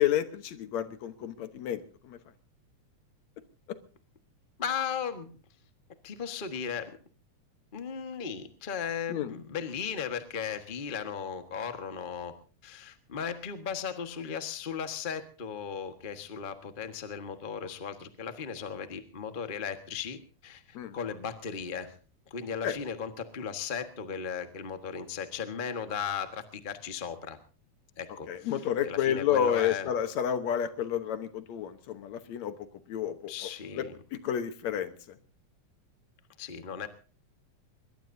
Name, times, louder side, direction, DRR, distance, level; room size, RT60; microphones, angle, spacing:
voice 1, 0.0-2.2 9.1-9.3 20.8-20.9 22.6-22.7 28.3-32.5 32.9-33.3 33.7-33.8 34.1-34.9, left 9 dB, 70° left, 11 dB, 2.3 m, -30 dB
voice 2, 4.6-5.3 6.0-7.0 7.7-12.3 12.6-22.0 22.3-27.4 28.0-29.9 33.3-34.0 36.4-36.9, left 7 dB, 45° left, 8 dB, 0.6 m, -36 dB
21.5 x 21.0 x 2.7 m, 0.37 s
omnidirectional pair, 3.5 m